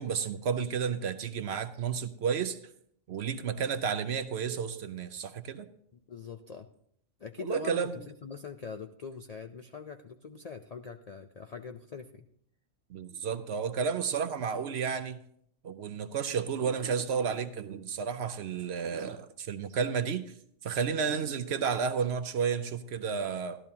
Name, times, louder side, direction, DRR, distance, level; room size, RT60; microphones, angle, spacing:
voice 1, 0.0-2.6 3.1-5.7 7.4-7.9 12.9-15.2 15.6-20.2 20.6-23.6, right 6 dB, 60° right, 10 dB, 0.8 m, -32 dB
voice 2, 5.9-6.7 7.2-12.3, left 5 dB, 90° left, 5 dB, 0.3 m, -43 dB
14.5 x 12.0 x 2.8 m, 0.68 s
omnidirectional pair, 1.4 m